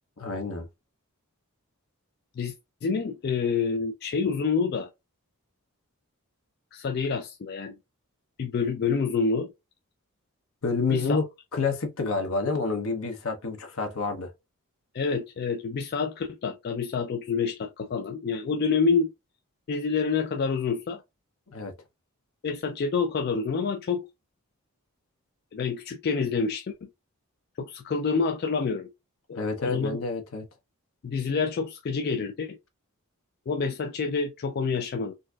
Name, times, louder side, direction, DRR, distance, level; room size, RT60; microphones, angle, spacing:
voice 1, 0.2-0.7 10.6-11.3 11.5-14.3 21.5-21.7 29.4-30.5, left 4 dB, 70° left, 0.8 m, -28 dB
voice 2, 2.8-4.9 6.7-7.8 8.4-9.5 10.9-11.2 14.9-19.1 19.7-21.0 22.4-24.1 25.5-26.9 27.6-28.9 29.3-30.0 31.0-32.6 33.5-35.1, left 5 dB, 45° left, 0.3 m, -27 dB
3.9 x 2.5 x 2.2 m
head